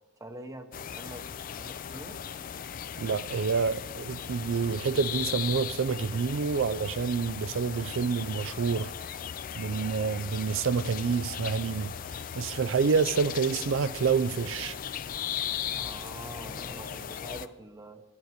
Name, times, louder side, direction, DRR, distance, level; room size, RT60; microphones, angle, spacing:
voice 1, 0.2-1.3 1.6-2.2 15.7-18.0, right 1 dB, 15° right, 0.8 m, -45 dB
sound 1, 0.7-17.5, left 8 dB, 45° left, 0.4 m, -37 dB
voice 2, 3.0-8.9 9.6-11.9 12.4-14.8, right 5 dB, 80° right, 0.4 m, -28 dB
12.0 x 6.6 x 9.2 m
head